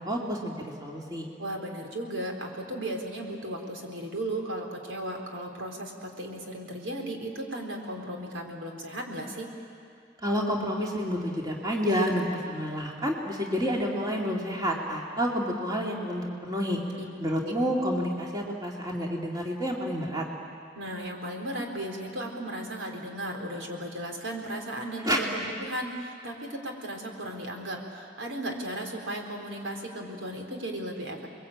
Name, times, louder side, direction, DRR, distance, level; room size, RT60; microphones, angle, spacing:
voice 1, 0.0-1.3 10.2-16.8 17.2-20.3 25.0-25.2, equal, 20° right, -1 dB, 2.7 m, -29 dB
voice 2, 1.4-9.5 17.0-17.1 17.3-17.5 20.8-31.3, right 1 dB, 85° right, 2 dB, 4.0 m, -35 dB
29.5 x 22.0 x 8.8 m, 2.4 s
head